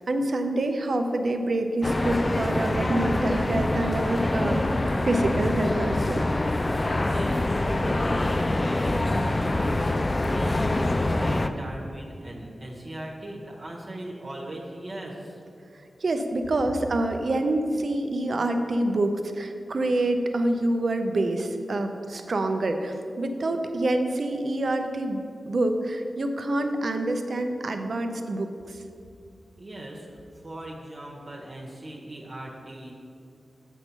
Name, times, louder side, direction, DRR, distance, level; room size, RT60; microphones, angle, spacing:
voice 1, 0.0-6.2 16.0-25.2 25.5-28.8, right 1 dB, 60° right, 6 dB, 0.6 m, -26 dB
sound 1, 1.8-11.5, left 2 dB, 30° left, 0.3 m, -25 dB
voice 2, 7.0-15.4 29.6-30.1 30.3-32.9, right 1 dB, 45° right, -3 dB, 1.2 m, -39 dB
8.0 x 4.5 x 5.5 m, 2.5 s
wide cardioid pair, 85°, 0 cm